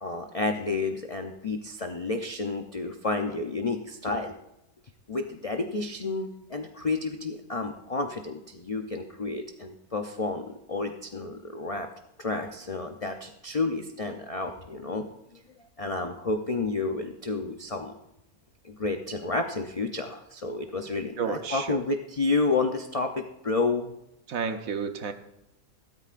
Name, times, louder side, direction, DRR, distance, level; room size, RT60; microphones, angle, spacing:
voice 1, 0.0-4.3 5.1-11.9 12.2-15.1 15.8-17.9 18.6-23.9, left 3 dB, 55° left, 5 dB, 0.4 m, -30 dB
voice 2, 21.2-21.8 24.3-25.1, right 6 dB, 70° right, 8 dB, 1.3 m, -31 dB
13.5 x 12.5 x 2.5 m, 0.84 s
omnidirectional pair, 1.5 m